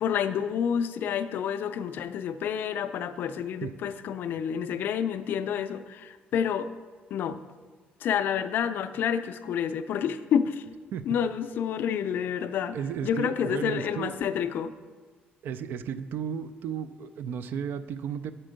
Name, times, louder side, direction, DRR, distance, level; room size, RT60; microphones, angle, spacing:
voice 1, 0.0-6.7 7.1-7.4 8.0-10.6 11.1-12.8 13.0-14.8, left 8 dB, 60° left, 11 dB, 0.3 m, -29 dB
voice 2, 12.7-14.1 15.4-18.3, right 8 dB, 60° right, 13 dB, 0.3 m, -34 dB
7.5 x 4.4 x 5.1 m, 1.4 s
cardioid pair, 150°, 4 cm